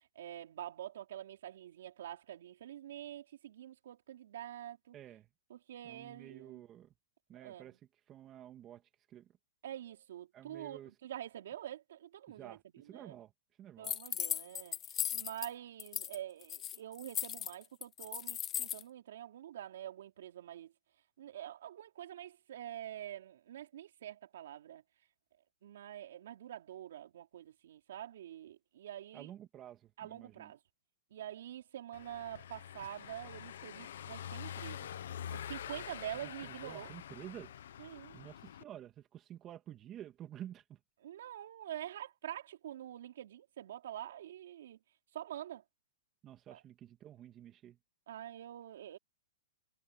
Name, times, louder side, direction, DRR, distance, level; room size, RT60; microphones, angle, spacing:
voice 1, 0.0-5.0 5.5-6.6 7.4-7.8 9.6-13.2 13.8-20.7 21.2-24.8 25.6-29.3 30.0-30.6 31.1-34.9 35.3-36.9 37.8-38.2 41.0-44.8 45.1-45.6 46.5-46.6 48.1-49.0, right 11 dB, 70° right, 4.6 m, -46 dB
voice 2, 4.9-5.3 5.8-6.9 7.3-7.8 8.1-8.8 9.1-9.3 10.3-10.9 12.3-13.3 13.6-13.9 29.1-30.5 36.2-37.6 38.1-40.8 46.2-47.8, right 11 dB, 25° right, 2.5 m, -51 dB
sound 1, 13.8-15.5 15.8-16.2 16.4-18.8, left 10 dB, 25° left, 0.6 m, -37 dB
Car passing by / Engine, 31.9-38.6, left 10 dB, 75° left, 1.3 m, -46 dB
hypercardioid pair, 140°, 0 cm